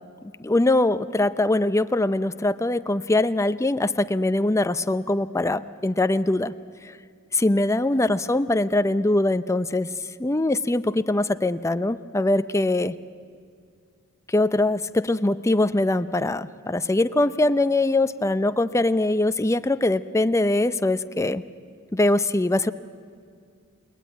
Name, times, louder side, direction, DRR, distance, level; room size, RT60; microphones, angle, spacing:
voice 1, 0.4-6.5 7.3-9.9 10.2-12.9 14.3-21.4 21.9-22.7, left 2 dB, 15° left, 12 dB, 0.6 m, -22 dB
29.0 x 19.5 x 9.2 m, 2.2 s
head